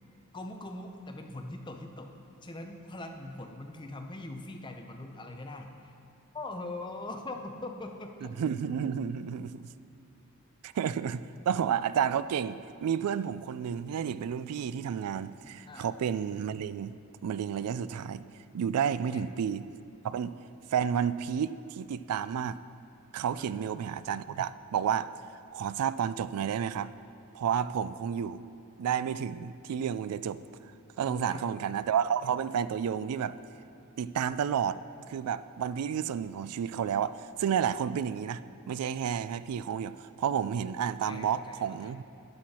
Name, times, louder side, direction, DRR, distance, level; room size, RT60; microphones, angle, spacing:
voice 1, 0.3-2.1 2.4-5.9 6.3-8.3 15.7-15.9 18.9-19.3 23.4-23.6 31.0-31.5 41.1-41.9, left 2 dB, 20° left, 4 dB, 0.6 m, -42 dB
voice 2, 8.4-9.7 10.6-16.9 17.2-18.2 18.5-19.7 20.0-20.4 20.7-22.6 23.1-25.1 25.5-26.9 27.3-28.4 28.8-30.4 31.0-33.4 34.0-34.8 35.1-38.4 38.7-42.0, right 8 dB, 85° right, 16 dB, 0.3 m, -31 dB
12.0 x 9.7 x 4.3 m, 2.6 s
head